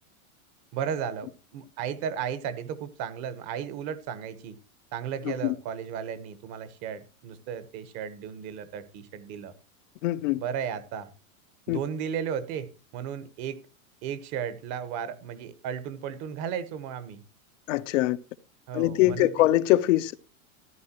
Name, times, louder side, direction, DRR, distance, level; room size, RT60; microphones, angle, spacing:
voice 1, 0.7-4.6 4.9-9.5 10.4-11.1 11.7-13.6 14.0-17.2 18.7-19.5, right 8 dB, 40° right, 1.1 m, -34 dB
voice 2, 5.2-5.5 10.0-10.4 11.7-11.8 17.7-18.2 18.7-20.2, left 16 dB, 60° left, 0.7 m, -23 dB
14.0 x 10.5 x 2.9 m
supercardioid pair, 150°, 42 cm